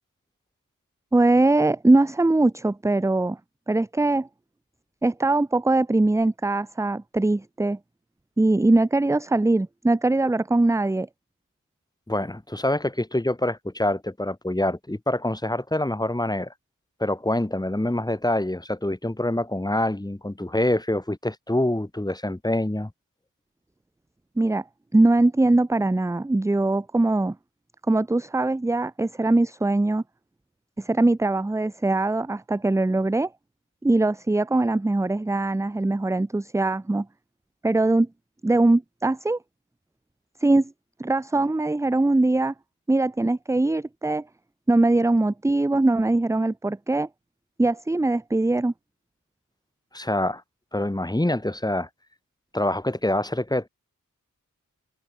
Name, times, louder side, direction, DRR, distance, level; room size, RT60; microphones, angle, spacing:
voice 1, 1.1-3.4 3.7-4.3 5.0-7.8 8.4-11.1 24.4-24.6 24.9-27.3 27.9-30.0 30.8-33.3 33.8-37.1 37.6-38.1 38.4-39.4 40.4-40.7 41.0-42.5 42.9-44.2 44.7-47.1 47.6-48.7, right 2 dB, 10° right, 0.4 m, -21 dB
voice 2, 12.1-16.5 17.0-22.9 49.9-50.4 50.7-51.9 52.5-53.7, left 1 dB, 10° left, 2.3 m, -25 dB
wide cardioid pair, 115°, 33 cm